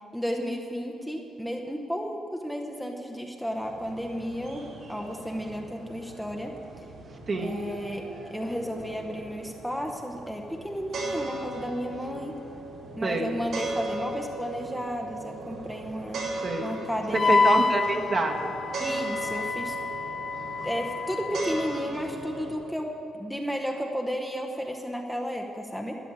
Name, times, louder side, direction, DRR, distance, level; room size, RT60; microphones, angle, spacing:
voice 1, 0.1-6.5 7.4-8.0 8.3-12.3 13.0-16.3 16.6-17.5 18.8-19.8 20.6-26.0, equal, ahead, 2 dB, 0.8 m, -33 dB
sound 1, 3.5-22.5, right 2 dB, 75° right, 2.6 m, -38 dB
voice 2, 7.3-7.6 13.0-13.3 16.4-16.7 17.1-18.5, right 3 dB, 35° right, 2 dB, 1.2 m, -27 dB
Wind instrument woodwind instrument, 17.1-21.8, left 4 dB, 25° left, 0.4 m, -27 dB
12.5 x 7.0 x 9.8 m, 2.7 s
cardioid pair, 135°, 0 cm